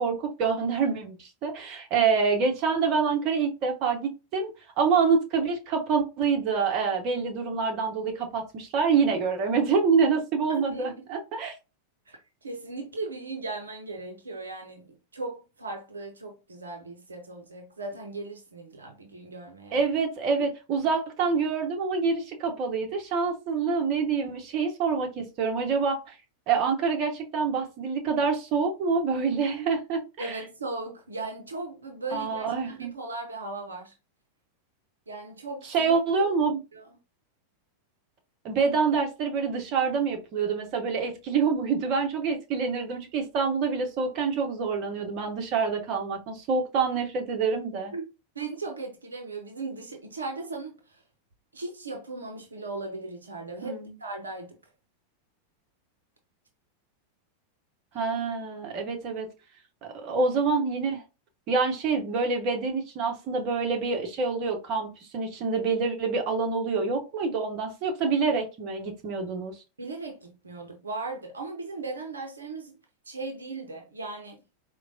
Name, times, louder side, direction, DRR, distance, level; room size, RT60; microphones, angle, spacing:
voice 1, 0.0-4.5 4.8-11.5 19.7-26.1 26.5-30.4 32.1-32.9 35.7-36.6 38.4-47.9 53.6-53.9 57.9-59.3 59.8-61.0 61.5-69.5, right 5 dB, 40° right, 0.8 m, -26 dB
voice 2, 10.5-10.9 12.1-19.8 30.2-33.9 35.1-36.3 36.7-36.9 47.9-48.0 48.3-51.0 51.5-54.6 69.8-72.8 73.1-74.4, right 3 dB, 75° right, 0.6 m, -37 dB
4.4 x 2.2 x 2.6 m
figure-of-eight pair, 90°, 0 cm